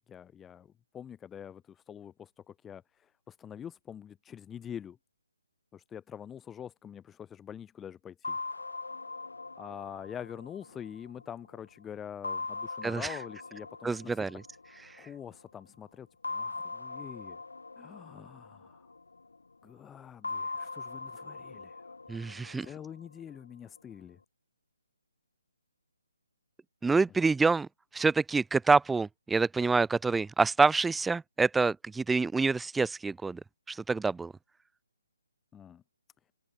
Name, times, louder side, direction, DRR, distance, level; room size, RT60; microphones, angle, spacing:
voice 1, 0.0-5.0 5.7-8.4 9.6-14.3 15.0-17.4 17.8-18.9 19.6-21.9 22.6-24.2 35.5-35.8, left 9 dB, 10° left, 1.0 m, -45 dB
sound 1, 8.2-11.6 12.2-15.2 16.2-19.4 20.2-23.4, left 3 dB, 70° left, 1.4 m, -41 dB
voice 2, 12.8-13.2 13.8-14.4 22.1-22.7 26.8-27.7 27.9-33.4 33.7-34.3, right 4 dB, 5° right, 0.6 m, -27 dB
figure-of-eight pair, 140°, 0 cm